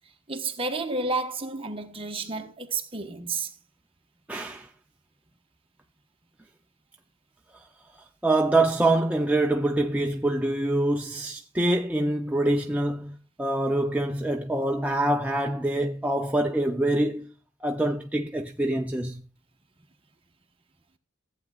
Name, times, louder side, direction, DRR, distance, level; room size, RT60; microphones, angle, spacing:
voice 1, 0.3-3.5, right 3 dB, 25° right, 1.1 m, -31 dB
voice 2, 4.3-4.7 8.2-17.3 17.6-19.2, right 1 dB, 5° right, 0.5 m, -25 dB
15.0 x 8.4 x 2.4 m
head